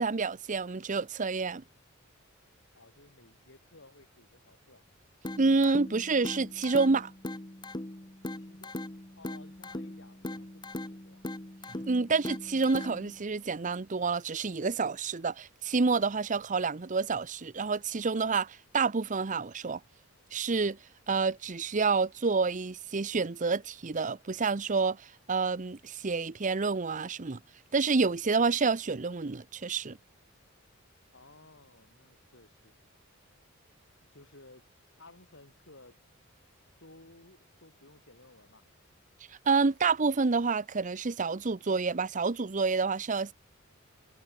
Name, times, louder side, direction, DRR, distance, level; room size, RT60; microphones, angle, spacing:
voice 1, 0.0-1.6 5.4-7.1 11.9-19.8 20.3-20.8 21.1-27.4 27.7-30.0 39.5-43.3, right 4 dB, 35° right, 0.7 m, -28 dB
voice 2, 2.7-4.9 8.4-8.8 9.1-11.2 31.1-32.8 34.0-34.7 35.0-36.0 36.8-38.6, left 2 dB, 60° left, 7.3 m, -57 dB
sound 1, 5.2-13.2, left 1 dB, 20° left, 1.3 m, -40 dB
head